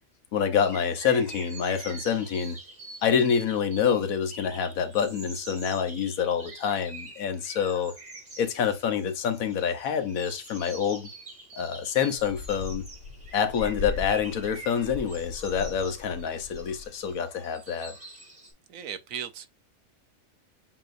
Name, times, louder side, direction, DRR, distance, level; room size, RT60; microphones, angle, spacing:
voice 1, 0.3-2.6 3.0-7.9 8.4-11.1 11.5-12.8 13.3-17.9, left 7 dB, 85° left, 1.3 m, -27 dB
sound 1, 0.5-18.5, right 2 dB, 30° right, 2.3 m, -46 dB
sound 2, 12.2-17.1, left 4 dB, 70° left, 0.9 m, -39 dB
voice 2, 18.7-19.5, right 8 dB, 80° right, 1.1 m, -36 dB
7.4 x 2.9 x 2.5 m
omnidirectional pair, 1.4 m